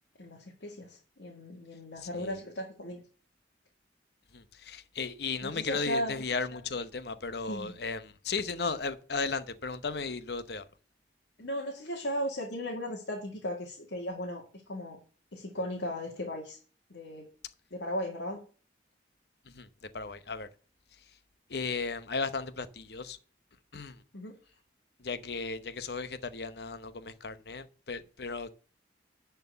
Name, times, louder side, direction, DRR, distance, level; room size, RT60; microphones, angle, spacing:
voice 1, 0.2-3.0 5.4-6.2 7.5-7.7 11.4-15.0 15.3-16.6 16.9-17.3 17.7-18.5 24.1-24.4, equal, 85° left, 2.2 m, -36 dB
voice 2, 4.3-10.6 19.5-19.7 19.9-20.5 21.5-23.2 23.7-24.0 25.0-28.5, left 4 dB, 60° left, 0.9 m, -35 dB
11.0 x 4.6 x 6.6 m
head